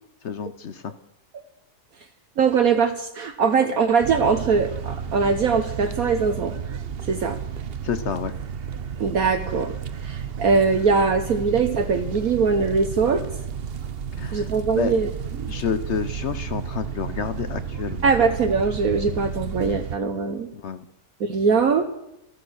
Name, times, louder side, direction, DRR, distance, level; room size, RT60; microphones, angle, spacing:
voice 1, 0.2-0.9 7.8-8.3 14.2-14.9 15.5-18.1 20.5-20.8, left 7 dB, 55° left, 12 dB, 0.9 m, -29 dB
voice 2, 2.4-6.6 7.1-7.4 9.0-9.7 10.0-13.2 14.3-15.1 15.4-15.5 18.0-20.5 21.2-21.9, right 5 dB, 65° right, 6 dB, 1.5 m, -21 dB
sound 1, 4.0-20.0, right 7 dB, 50° right, 0.8 m, -32 dB
14.0 x 13.5 x 6.4 m, 0.84 s
omnidirectional pair, 1.7 m